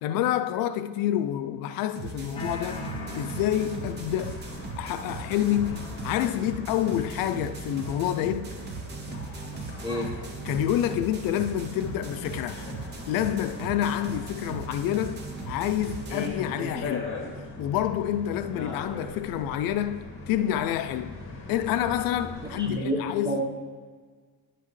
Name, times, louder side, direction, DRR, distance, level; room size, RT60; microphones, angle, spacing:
voice 1, 0.0-4.4 4.8-8.5 10.4-12.6 13.1-15.2 15.5-17.1 17.6-21.1 21.5-23.4, left 11 dB, 70° left, 0.5 m, -28 dB
sound 1, 2.0-16.3, right 4 dB, 30° right, 0.8 m, -39 dB
sound 2, 2.3-4.3, left 3 dB, 15° left, 0.6 m, -39 dB
sound 3, 2.7-22.7, left 3 dB, 35° left, 1.7 m, -40 dB
voice 2, 22.6-23.0 23.2-23.4, right 1 dB, 10° right, 1.1 m, -28 dB
10.5 x 7.6 x 3.2 m
cardioid pair, 170°, 35 cm